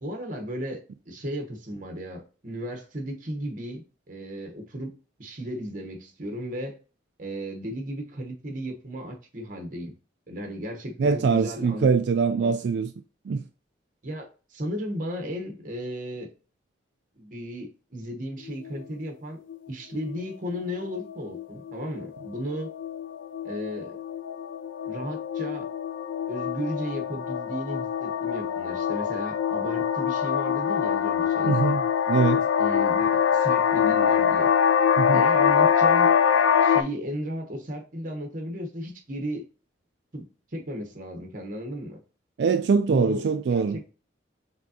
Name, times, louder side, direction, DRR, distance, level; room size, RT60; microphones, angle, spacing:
voice 1, 0.0-4.9 5.2-6.8 7.2-9.9 10.3-11.9 12.4-12.6 14.0-16.3 17.2-19.4 19.7-22.7 23.4-24.0 24.8-25.7 26.3-31.6 32.6-34.5 35.1-36.1 36.6-39.4 40.1-40.3 40.5-42.0 42.8-43.2 43.5-43.9, equal, 45° right, 1.0 m, -35 dB
voice 2, 11.0-12.9 13.3-13.4 31.4-31.8 32.1-32.4 35.0-35.2 42.4-43.9, right 5 dB, 60° right, 0.3 m, -23 dB
sound 1, 18.5-18.9 19.5-19.7 19.9-20.2 20.5-36.8, left 7 dB, 80° left, 0.4 m, -24 dB
5.2 x 3.5 x 2.8 m
head